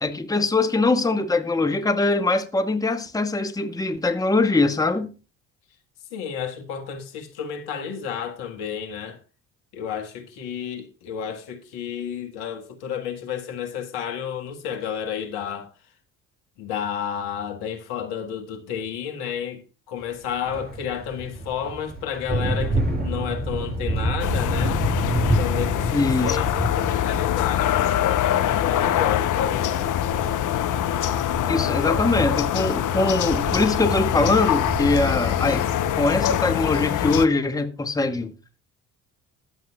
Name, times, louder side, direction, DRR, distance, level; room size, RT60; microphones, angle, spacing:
voice 1, 0.0-5.1 25.9-26.4 31.5-35.7 36.0-38.3, left 3 dB, 10° left, 1.2 m, -22 dB
voice 2, 6.1-9.2 9.7-15.7 16.6-24.8 25.4-29.9, left 8 dB, 65° left, 1.7 m, -31 dB
sound 1, 20.2-36.3, right 1 dB, 25° right, 6.1 m, -29 dB
sound 2, 24.2-37.3, left 11 dB, 50° left, 0.8 m, -24 dB
21.0 x 7.8 x 2.4 m
hypercardioid pair, 55°, 41 cm